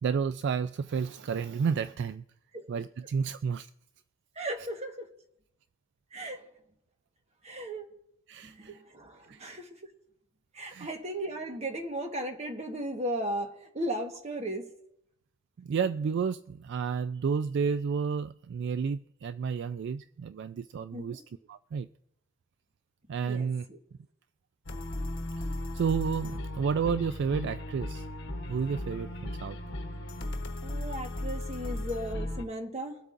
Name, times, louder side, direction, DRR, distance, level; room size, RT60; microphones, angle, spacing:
voice 1, 0.0-2.2 2.7-3.7 8.3-8.8 9.3-9.4 10.7-10.9 15.6-21.2 21.5-21.9 23.1-23.7 25.4-25.5 25.7-28.1 28.5-29.6, right 6 dB, 60° right, 0.3 m, -31 dB
voice 2, 4.4-5.1 6.1-6.4 7.4-7.9 8.4-9.7 10.5-14.6 20.9-21.2 23.2-23.8 30.6-33.0, right 1 dB, 35° right, 1.4 m, -36 dB
sound 1, 24.7-32.4, left 1 dB, 60° left, 1.1 m, -36 dB
23.0 x 8.1 x 2.6 m
head